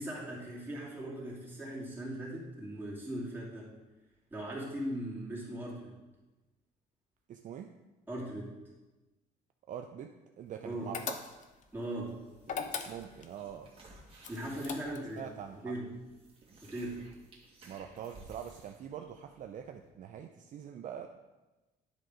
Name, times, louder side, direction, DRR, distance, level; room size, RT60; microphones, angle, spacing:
voice 1, 0.0-3.7 4.3-6.0 8.1-8.6 10.6-10.9 11.7-12.2 14.3-15.2 15.6-15.9 16.6-17.0, right 1 dB, 10° right, -6 dB, 2.6 m, -39 dB
voice 2, 7.3-7.7 9.7-11.3 12.9-13.7 14.8-15.6 17.6-21.1, right 9 dB, 50° right, 5 dB, 0.5 m, -44 dB
sound 1, 10.9-11.6 12.4-13.3 14.2-15.2, left 6 dB, 50° left, 0.7 m, -38 dB
sound 2, 11.2-19.9, right 2 dB, 35° right, 1.8 m, -57 dB
10.0 x 3.8 x 5.0 m, 1.1 s
cardioid pair, 110°, 17 cm